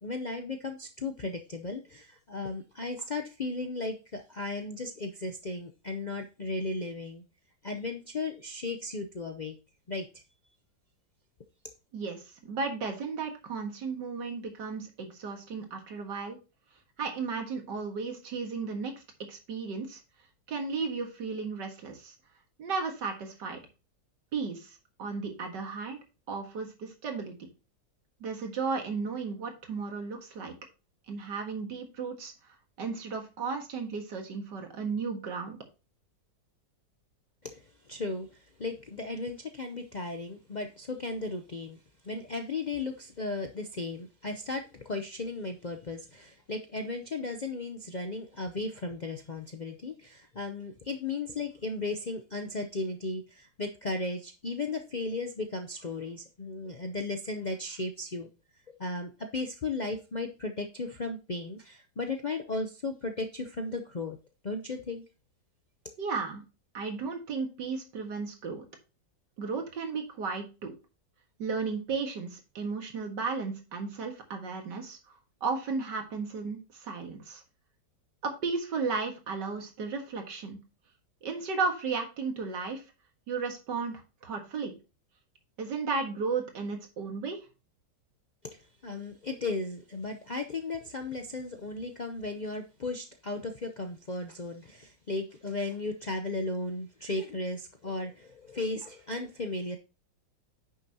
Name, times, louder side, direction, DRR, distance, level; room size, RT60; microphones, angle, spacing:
voice 1, 0.0-7.2 7.6-9.5 9.9-10.1 37.4-41.8 42.0-58.3 58.8-64.2 64.4-65.0 88.4-99.8, left 3 dB, 80° left, 5 dB, 0.4 m, -35 dB
voice 2, 11.9-16.4 17.0-18.9 19.3-20.0 20.5-22.1 22.6-23.6 24.3-26.0 26.3-27.4 28.2-30.5 31.1-32.3 32.8-35.6 66.0-66.4 66.7-68.7 69.4-70.7 71.4-75.0 75.4-77.4 78.2-80.6 81.2-82.8 83.3-84.7 85.6-87.4, right 4 dB, 70° right, 4 dB, 2.3 m, -34 dB
9.7 x 6.5 x 2.8 m, 0.30 s
omnidirectional pair, 1.9 m